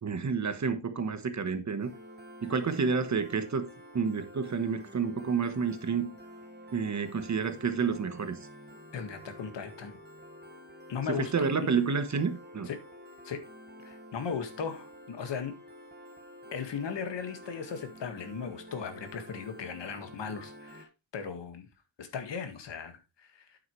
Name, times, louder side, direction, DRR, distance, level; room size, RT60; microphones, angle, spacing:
voice 1, 0.0-1.9 2.4-3.7 3.9-6.1 6.7-8.5 11.2-12.7, right 5 dB, 40° right, 1.2 m, -29 dB
Piano, 1.8-20.8, equal, 25° right, 1.7 m, -49 dB
voice 2, 8.9-9.9 10.9-11.3 12.7-12.8 13.2-13.4 13.8-15.5 16.5-20.9 21.1-21.7 22.0-23.6, left 6 dB, 80° left, 1.9 m, -37 dB
8.8 x 7.8 x 3.2 m
wide cardioid pair, 130°, 42 cm